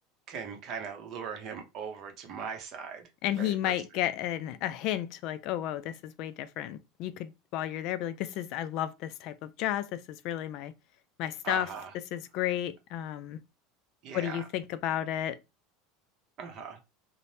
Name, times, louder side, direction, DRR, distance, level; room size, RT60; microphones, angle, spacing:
voice 1, 0.3-3.0 3.4-3.7 11.4-11.9 14.0-14.4 16.4-16.8, right 6 dB, 40° right, 0.7 m, -39 dB
voice 2, 3.2-10.7 11.2-11.7 12.1-13.4 14.1-15.4, left 12 dB, 45° left, 0.3 m, -32 dB
2.7 x 2.0 x 3.1 m
supercardioid pair, 160°, 0 cm